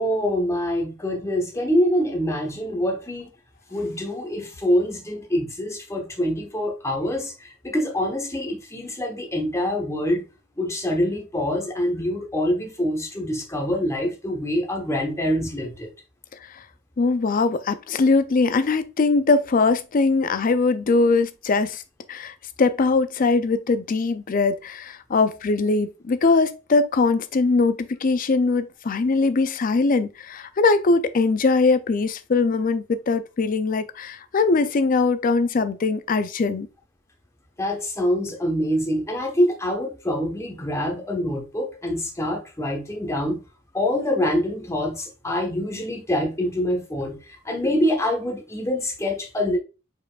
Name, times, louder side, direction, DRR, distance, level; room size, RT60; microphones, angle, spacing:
voice 1, 0.0-3.3 3.7-7.3 7.6-10.2 10.6-15.9 37.6-43.4 43.7-47.2 47.4-49.6, left 1 dB, 15° left, 1.0 m, -25 dB
voice 2, 17.0-21.8 22.1-22.3 22.6-36.7, left 3 dB, 40° left, 0.4 m, -21 dB
4.9 x 4.4 x 2.4 m
head